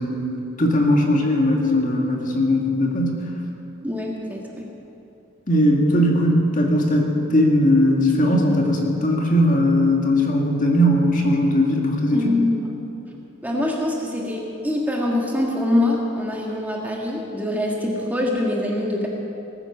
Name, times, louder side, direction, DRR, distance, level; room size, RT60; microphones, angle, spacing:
voice 1, 0.0-3.2 5.5-12.4, left 1 dB, 40° left, 0 dB, 1.9 m, -19 dB
voice 2, 3.8-4.4 12.1-12.8 13.4-19.1, left 1 dB, 10° right, -2 dB, 1.6 m, -24 dB
18.5 x 9.9 x 7.2 m, 3.0 s
head